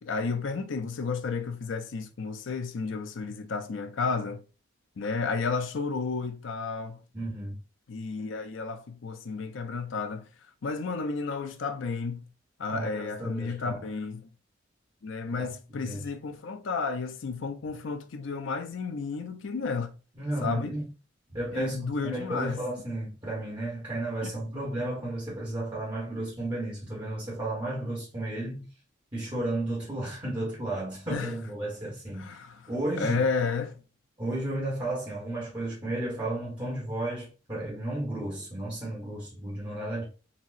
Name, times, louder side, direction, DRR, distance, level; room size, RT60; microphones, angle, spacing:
voice 1, 0.0-4.4 5.0-7.0 7.9-10.3 10.6-12.3 12.6-14.3 15.0-19.9 20.4-20.7 21.5-22.6 24.2-24.3 31.1-31.3 32.2-32.7 33.0-33.8, left 4 dB, 70° left, 0.5 m, -32 dB
voice 2, 7.1-7.6 12.7-13.8 15.3-16.0 20.2-20.8 21.3-28.7 29.1-32.3 32.7-33.3 34.2-40.0, right 1 dB, 20° right, 1.0 m, -33 dB
4.0 x 2.0 x 2.5 m
head